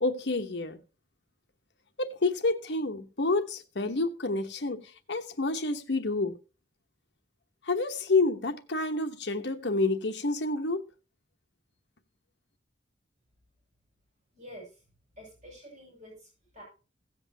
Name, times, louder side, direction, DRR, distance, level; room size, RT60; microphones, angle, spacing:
voice 1, 0.0-0.8 2.0-6.4 7.6-10.8, left 3 dB, 65° left, 1.0 m, -29 dB
voice 2, 14.3-14.8 15.2-16.6, equal, 40° right, 6.5 m, -48 dB
16.5 x 8.0 x 2.8 m
head